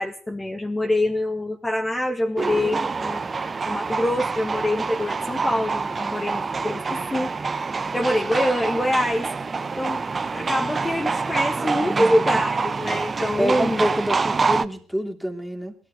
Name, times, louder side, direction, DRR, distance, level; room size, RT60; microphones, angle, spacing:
voice 1, 0.0-7.3 7.9-9.3 9.8-10.0 10.3-13.8, left 1 dB, 15° left, 3 dB, 1.7 m, -25 dB
sound 1, 2.4-14.7, right 4 dB, 30° right, 0.9 m, -26 dB
voice 2, 11.8-12.4 13.4-15.7, equal, ahead, 3 dB, 2.9 m, -27 dB
17.5 x 12.0 x 6.8 m, 0.43 s
hypercardioid pair, 55°, 0 cm